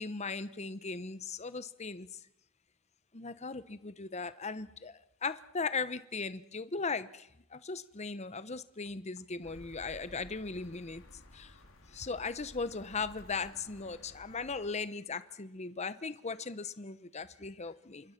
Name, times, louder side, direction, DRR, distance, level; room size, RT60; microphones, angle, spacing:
voice 1, 0.0-2.1 3.1-11.0 11.3-11.5 11.9-18.1, left 4 dB, 35° left, 0.9 m, -38 dB
sound 1, 9.4-14.7, left 1 dB, 70° left, 4.1 m, -55 dB
28.0 x 24.5 x 5.9 m
head